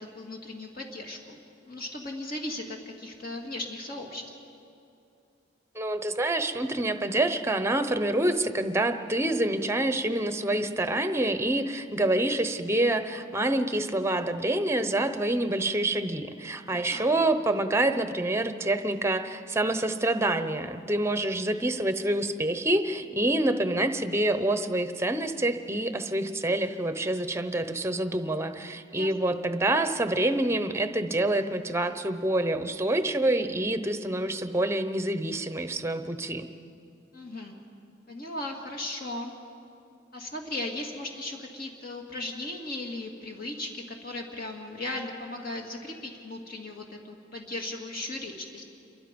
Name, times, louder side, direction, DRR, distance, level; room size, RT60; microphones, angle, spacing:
voice 1, 0.0-4.3 16.7-17.1 28.9-29.4 37.1-37.5 38.1-39.3 40.1-48.6, left 2 dB, 50° left, 0 dB, 2.2 m, -37 dB
voice 2, 5.7-36.5, right 1 dB, 15° right, 9 dB, 0.8 m, -27 dB
28.0 x 23.5 x 5.3 m, 2.6 s
head